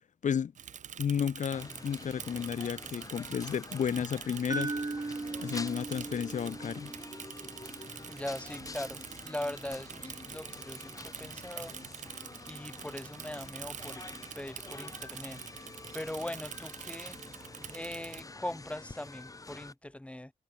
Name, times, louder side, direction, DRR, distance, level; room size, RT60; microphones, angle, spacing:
Bicycle / Mechanisms, 0.5-18.2, right 8 dB, 70° right, 0.5 m, -46 dB
voice 1, 1.0-4.7 5.4-6.9, left 7 dB, 75° left, 0.7 m, -32 dB
sound 1, 1.5-19.7, left 3 dB, 25° left, 0.7 m, -47 dB
sound 2, 4.5-8.6, right 3 dB, 30° right, 1.6 m, -39 dB
voice 2, 8.1-11.7 12.5-14.0 14.3-15.4 15.9-17.2 17.7-20.3, left 1 dB, 10° left, 1.3 m, -40 dB
cardioid pair, 55°, 13 cm